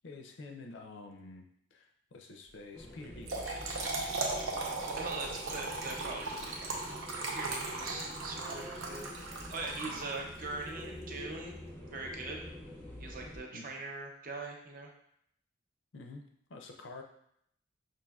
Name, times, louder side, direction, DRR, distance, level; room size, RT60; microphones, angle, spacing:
voice 1, 0.0-3.6 9.8-10.0 13.5-13.7 15.9-16.2 16.5-17.0, left 3 dB, 65° left, 2 dB, 0.5 m, -48 dB
sound 1, 2.7-13.4, left 1 dB, 10° left, 0.5 m, -47 dB
Trickle dribble / Fill (with liquid), 3.0-10.5, right 3 dB, 80° right, 0.7 m, -37 dB
voice 2, 4.9-11.5 11.9-12.5 13.0-14.9, right 3 dB, 45° right, 1 dB, 0.5 m, -42 dB
5.3 x 2.6 x 2.3 m, 0.72 s
head